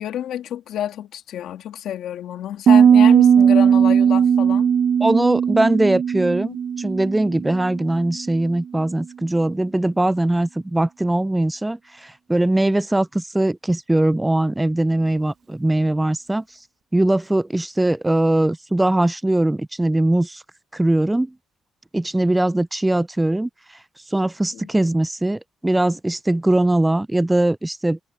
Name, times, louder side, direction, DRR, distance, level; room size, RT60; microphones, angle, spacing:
voice 1, 0.0-4.7 24.5-24.7, left 11 dB, 80° left, 2.6 m, -29 dB
Piano, 2.7-8.3, right 7 dB, 55° right, 0.9 m, -17 dB
voice 2, 5.0-16.4 16.9-20.4 20.7-21.3 21.9-23.8 24.1-28.0, right 1 dB, 10° right, 0.3 m, -21 dB
cardioid pair, 90°, 0 cm